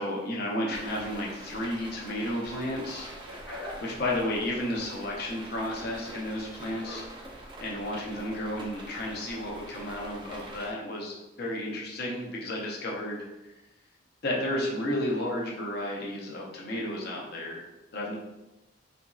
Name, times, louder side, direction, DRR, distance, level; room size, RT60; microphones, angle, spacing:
voice 1, 0.0-3.1 3.8-7.0 7.6-13.3 14.2-17.6 17.9-18.1, left 1 dB, 55° left, -2 dB, 0.6 m, -32 dB
sound 1, 0.7-10.7, right 1 dB, 25° right, 0.4 m, -45 dB
sound 2, 3.3-8.3, left 1 dB, 80° left, 0.9 m, -46 dB
2.9 x 2.6 x 2.3 m, 1.0 s
head